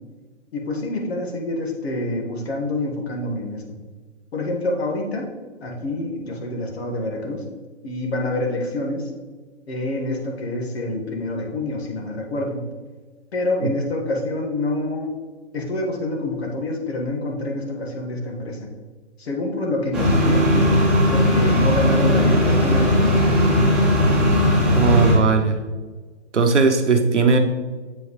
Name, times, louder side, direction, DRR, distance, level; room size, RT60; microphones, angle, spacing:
voice 1, 0.5-3.8 4.3-5.3 5.6-7.4 7.8-9.1 9.7-12.6 13.3-15.1 15.5-18.7 19.2-20.8 21.1-23.3, left 1 dB, 65° left, 1 dB, 1.7 m, -27 dB
sound 1, 19.9-25.1, left 1 dB, ahead, 1.3 m, -17 dB
voice 2, 24.7-25.6 26.3-27.4, right 4 dB, 90° right, 5 dB, 1.0 m, -17 dB
7.7 x 4.9 x 3.2 m, 1.4 s
hypercardioid pair, 140°, 34 cm